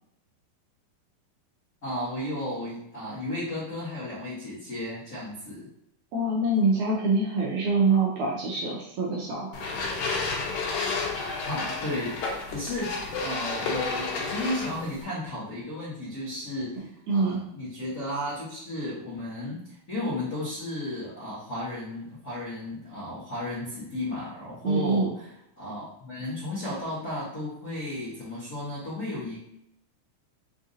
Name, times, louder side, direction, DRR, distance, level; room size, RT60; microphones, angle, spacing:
voice 1, 1.8-5.7 11.3-25.2 25.6-29.4, left 1 dB, 60° left, -10 dB, 0.9 m, -34 dB
voice 2, 6.1-9.6 16.8-17.4 24.6-25.1, right 3 dB, 80° right, -3 dB, 1.8 m, -25 dB
sound 1, 9.5-15.0, left 4 dB, 90° left, 2.6 m, -31 dB
5.7 x 2.5 x 2.6 m, 0.78 s
omnidirectional pair, 3.9 m